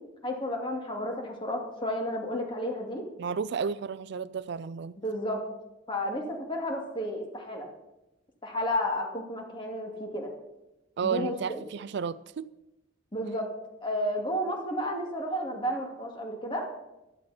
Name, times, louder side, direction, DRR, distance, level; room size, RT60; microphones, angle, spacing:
voice 1, 0.2-3.0 5.0-5.4 5.9-7.7 8.4-10.3 11.0-11.6 13.1-13.5 13.8-16.7, equal, 25° left, 2.6 m, -32 dB
voice 2, 3.2-5.0 11.0-12.5, right 6 dB, 60° right, 0.4 m, -32 dB
15.0 x 11.5 x 4.4 m
head